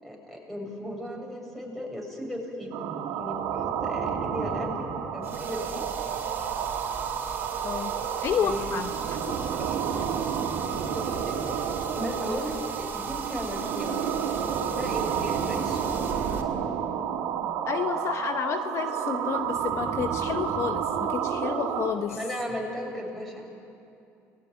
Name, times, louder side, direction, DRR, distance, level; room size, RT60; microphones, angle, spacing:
voice 1, 0.0-2.7 3.2-5.9 8.4-8.7 9.6-10.0 10.9-11.6 11.9-14.2 14.7-16.2 22.1-23.5, equal, ahead, 0 dB, 7.1 m, -36 dB
sound 1, 2.7-21.9, right 8 dB, 85° right, 2.8 m, -30 dB
sound 2, 5.2-16.4, right 4 dB, 30° right, 3.9 m, -40 dB
voice 2, 7.6-7.9 8.2-9.4 10.0-10.1 17.7-22.2, left 8 dB, 55° left, 7 dB, 1.0 m, -30 dB
28.5 x 20.0 x 9.5 m, 2.7 s
cardioid pair, 105°, 6 cm